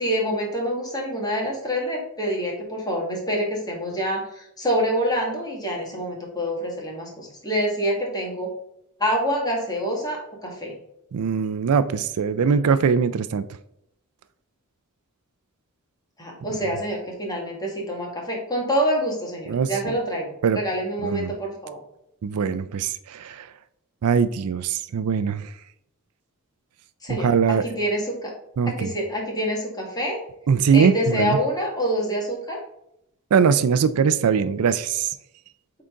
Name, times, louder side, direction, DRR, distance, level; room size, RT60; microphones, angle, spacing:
voice 1, 0.0-8.5 9.0-10.7 16.2-21.8 27.0-28.3 28.7-30.2 30.7-32.6, equal, 20° left, 1.8 m, -26 dB
voice 2, 11.1-13.5 19.5-19.7 20.4-20.6 21.0-21.3 22.2-23.5 24.0-25.5 27.1-27.7 28.6-28.9 30.5-31.4 33.3-35.1, right 6 dB, 80° right, 0.4 m, -21 dB
8.1 x 3.8 x 3.8 m
head